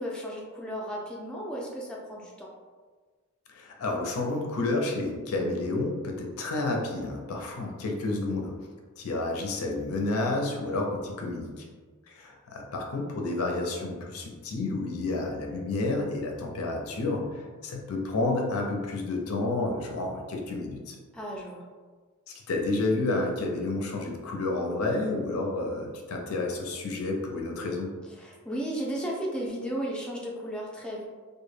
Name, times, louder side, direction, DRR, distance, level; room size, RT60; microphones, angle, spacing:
voice 1, 0.0-2.5 21.1-21.7 28.2-31.0, equal, 5° left, -4 dB, 0.3 m, -34 dB
voice 2, 3.5-8.6 9.0-11.7 12.2-17.3 17.6-21.0 22.5-27.9, left 2 dB, 85° left, 1 dB, 0.5 m, -30 dB
2.1 x 2.1 x 3.1 m, 1.4 s
head